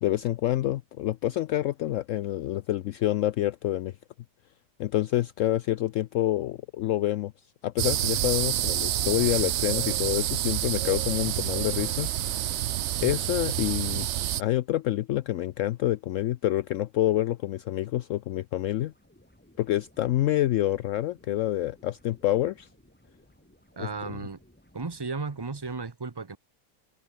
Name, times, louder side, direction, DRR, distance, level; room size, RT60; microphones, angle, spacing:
voice 1, 0.0-3.9 4.8-7.3 7.6-12.6 13.0-14.1 14.4-18.9 19.6-22.7, left 14 dB, 75° left, 0.7 m, -27 dB
sound 1, 7.8-14.4, right 12 dB, 85° right, 0.6 m, -28 dB
sound 2, 18.6-25.9, equal, 5° left, 3.1 m, -60 dB
voice 2, 23.8-24.4 24.7-26.4, right 4 dB, 30° right, 0.4 m, -34 dB
omnidirectional pair, 1.8 m